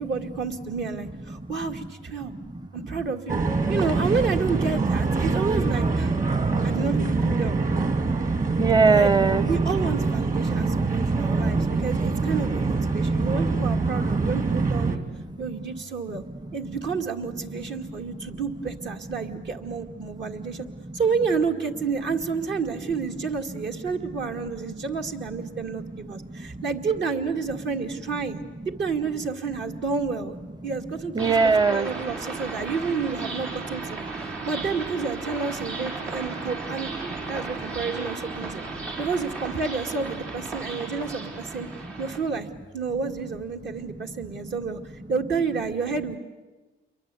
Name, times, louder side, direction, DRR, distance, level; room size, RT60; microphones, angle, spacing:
voice 1, 0.0-2.3 2.7-3.4 3.7-6.2 6.6-7.6 8.9-9.1 9.4-15.0 15.4-16.2 16.5-20.7 20.9-30.4 30.6-31.3 31.7-36.9 37.3-38.7 39.0-41.7 42.0-42.5 42.7-44.8 45.1-46.2, right 5 dB, 65° right, 3 dB, 2.3 m, -30 dB
voice 2, 1.3-1.9 2.2-3.0 6.2-6.7 7.5-9.4 11.6-11.8 12.9-13.2 13.9-14.3 14.9-15.8 16.1-16.4 17.6-18.3 19.7-21.0 23.7-23.8 24.7-24.8 25.7-26.6 31.1-31.9 34.2-34.4 38.8-39.0 41.7-41.9 44.3-44.5, right 4 dB, 20° right, 17 dB, 0.9 m, -27 dB
sound 1, 3.3-15.0, right 3 dB, 40° right, 2.5 m, -24 dB
sound 2, 31.2-42.2, right 3 dB, 85° right, 6.1 m, -35 dB
29.0 x 23.0 x 8.5 m, 1.2 s
cardioid pair, 90°, 20 cm